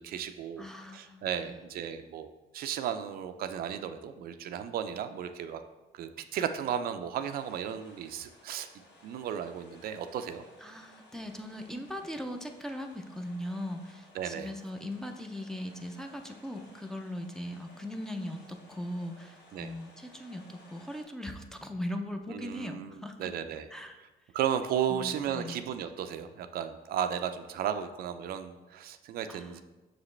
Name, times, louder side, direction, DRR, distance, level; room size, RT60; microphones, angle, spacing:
voice 1, 0.0-0.7 0.9-5.6 5.9-8.7 9.0-10.4 14.2-14.5 19.5-19.7 22.3-22.9 23.2-23.7 24.3-29.6, right 9 dB, 60° right, 9 dB, 0.4 m, -34 dB
voice 2, 0.6-1.6 10.6-23.3 23.7-24.0 24.9-25.6 29.3-29.6, left 1 dB, 5° left, 3 dB, 0.5 m, -39 dB
sound 1, 7.2-21.0, left 1 dB, 80° left, 2.0 m, -58 dB
6.2 x 4.9 x 3.2 m, 1.1 s
cardioid pair, 110°, 17 cm